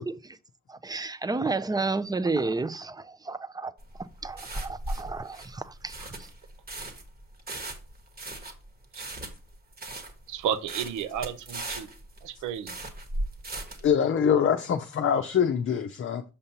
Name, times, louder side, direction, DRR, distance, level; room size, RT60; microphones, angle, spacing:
voice 1, 0.1-0.4 0.7-3.7 4.2-6.1, right 3 dB, 15° right, 0.5 m, -31 dB
sound 1, 3.8-13.9, right 1 dB, 30° right, 1.3 m, -37 dB
voice 2, 10.3-11.9 12.2-12.8, right 9 dB, 85° right, 0.8 m, -32 dB
voice 3, 13.8-16.2, left 7 dB, 45° left, 0.6 m, -24 dB
6.8 x 5.3 x 2.9 m
cardioid pair, 90°, 30 cm